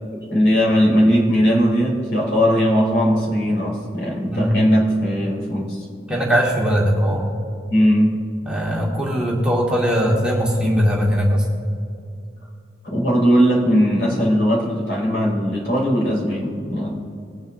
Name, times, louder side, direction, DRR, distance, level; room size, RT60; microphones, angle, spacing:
voice 1, 0.1-5.8 7.7-8.2 12.8-16.9, equal, 70° left, -3 dB, 3.3 m, -19 dB
voice 2, 4.2-4.5 6.1-7.3 8.4-11.4, equal, 5° right, -4 dB, 1.5 m, -20 dB
21.0 x 9.2 x 2.7 m, 2.4 s
head